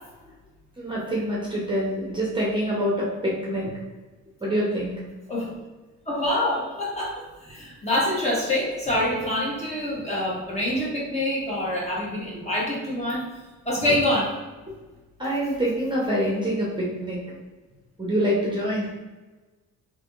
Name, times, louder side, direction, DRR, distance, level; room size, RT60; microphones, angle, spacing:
voice 1, 0.8-3.7 4.4-4.9 13.8-14.0 14.7-14.8 15.2-17.2 18.0-19.0, equal, 15° right, -5 dB, 0.8 m, -26 dB
voice 2, 6.1-13.3 13.6-14.3, left 1 dB, 20° left, -5 dB, 1.2 m, -26 dB
3.3 x 2.8 x 2.5 m, 1.2 s
cardioid pair, 90°, 30 cm